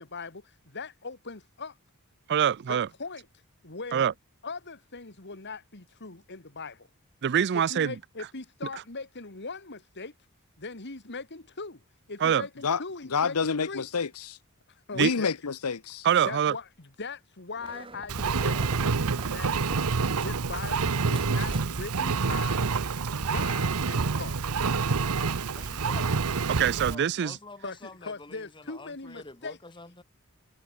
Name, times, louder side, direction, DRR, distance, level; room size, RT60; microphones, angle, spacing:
voice 1, 0.0-1.8 2.7-3.3 3.6-4.1 4.4-6.9 7.5-10.1 10.6-11.8 12.1-13.9 14.9-15.3 16.2-18.8 19.3-19.5 20.2-22.7 23.2-24.4 27.6-29.6, left 4 dB, 50° left, 2.6 m, -40 dB
voice 2, 2.3-2.9 3.9-4.1 7.2-7.9 12.2-12.5 15.0-15.1 16.0-16.6 26.5-27.4, right 8 dB, 50° right, 0.4 m, -24 dB
voice 3, 13.1-14.4 15.0-16.1, left 5 dB, 85° left, 0.9 m, -28 dB
sound 1, 17.6-20.4 20.7-22.0, right 2 dB, 25° right, 2.4 m, -46 dB
Engine, 18.1-26.9, right 4 dB, 75° right, 0.8 m, -27 dB
voice 4, 25.5-26.2 26.8-30.0, left 3 dB, 20° left, 3.2 m, -47 dB
head